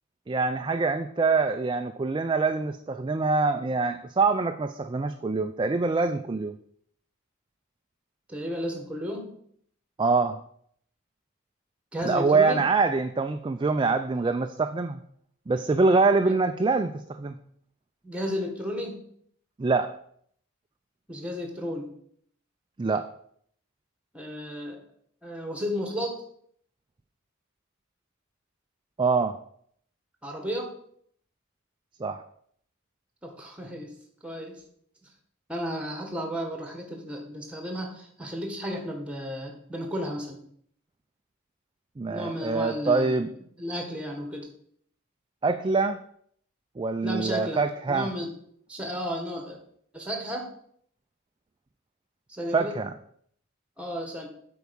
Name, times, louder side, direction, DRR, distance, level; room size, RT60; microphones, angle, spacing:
voice 1, 0.3-6.6 10.0-10.4 12.0-15.0 15.5-17.3 19.6-19.9 22.8-23.1 29.0-29.4 32.0-32.2 42.0-43.3 45.4-46.0 46.8-48.1 52.5-52.9, right 4 dB, 20° right, 8 dB, 0.3 m, -25 dB
voice 2, 8.3-9.3 11.9-12.7 16.3-16.4 18.0-19.0 21.1-21.9 24.1-24.8 25.2-26.2 30.2-30.7 33.2-33.9 34.2-34.6 35.5-40.4 42.1-43.2 43.6-44.5 47.0-48.3 48.7-49.6 49.9-50.5 52.3-52.8 53.8-54.3, equal, 5° right, 3 dB, 1.6 m, -33 dB
8.2 x 4.6 x 7.0 m, 0.65 s
head